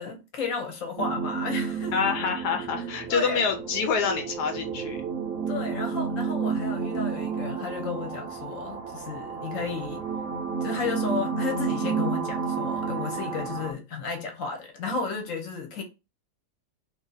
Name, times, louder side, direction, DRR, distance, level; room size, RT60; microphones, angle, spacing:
voice 1, 0.0-2.2 3.1-3.4 5.5-10.1 10.6-15.8, left 4 dB, 60° left, 1.2 m, -33 dB
sound 1, 1.0-13.7, right 5 dB, 70° right, 0.9 m, -31 dB
voice 2, 1.9-5.0, left 5 dB, 80° left, 1.2 m, -27 dB
2.7 x 2.7 x 3.9 m
omnidirectional pair, 1.7 m